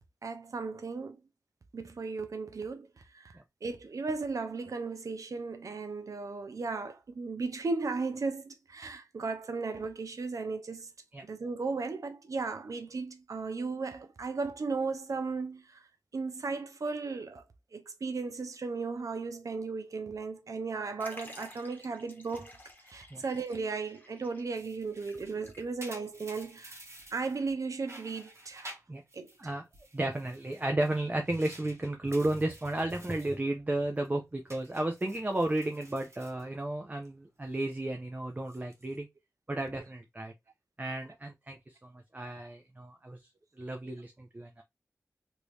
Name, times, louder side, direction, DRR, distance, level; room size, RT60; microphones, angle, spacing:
voice 1, 0.2-1.2 1.7-2.9 3.1-3.3 3.6-10.9 11.2-15.8 16.1-17.4 17.7-22.5 22.9-26.8 27.1-28.8 29.1-29.3, right 4 dB, 75° right, 0.6 m, -36 dB
Liquid, 21.0-26.1 26.4-26.5 27.4-27.5, left 1 dB, 30° left, 1.1 m, -52 dB
sound 1, 24.5-27.5 27.8-29.4 29.7-33.4 33.7-34.1 34.5-37.1 37.4-37.7 38.3-39.0, right 1 dB, 55° right, 1.2 m, -52 dB
voice 2, 29.9-39.1 39.5-40.3 40.8-43.2 43.6-44.6, right 1 dB, 30° right, 0.6 m, -33 dB
3.0 x 2.7 x 3.2 m
cardioid pair, 40°, 6 cm